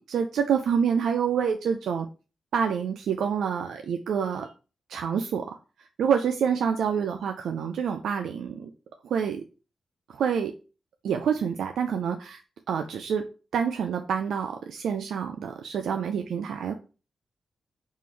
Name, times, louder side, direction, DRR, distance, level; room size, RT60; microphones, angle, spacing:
voice 1, 0.1-2.1 2.5-4.5 4.9-5.5 6.0-8.7 9.0-9.4 10.1-10.5 11.0-12.4 12.7-13.3 13.5-16.7, right 7 dB, 85° right, 5 dB, 0.3 m, -27 dB
3.7 x 2.5 x 4.4 m, 0.33 s
cardioid pair, 75°, 0 cm